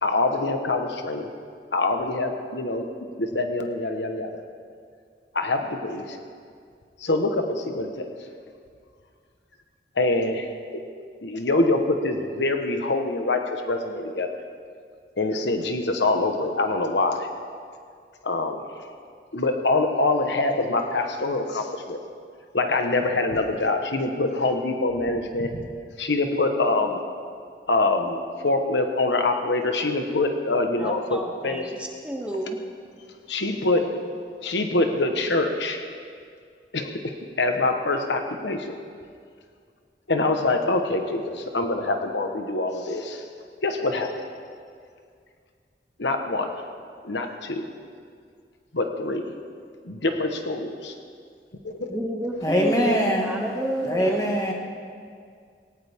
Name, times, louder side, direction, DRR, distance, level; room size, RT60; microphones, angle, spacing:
voice 1, 0.0-1.3 1.7-2.9 3.2-4.3 5.3-6.2 7.0-8.1 10.0-10.5 11.2-14.3 15.2-17.3 18.2-18.6 19.3-22.0 22.5-25.6 26.0-27.0 27.7-28.2 28.4-31.6 33.3-33.8 34.4-35.8 36.7-38.7 40.1-43.2 43.6-44.1 46.0-46.5 47.0-47.6 48.7-49.3 49.8-50.9, left 2 dB, 85° left, 5 dB, 1.3 m, -25 dB
voice 2, 30.7-32.6 51.9-54.3, right 1 dB, 5° right, 1 dB, 1.1 m, -31 dB
voice 3, 52.4-53.3 53.9-54.5, equal, 20° left, -1 dB, 2.0 m, -22 dB
19.0 x 18.0 x 3.7 m, 2.2 s
head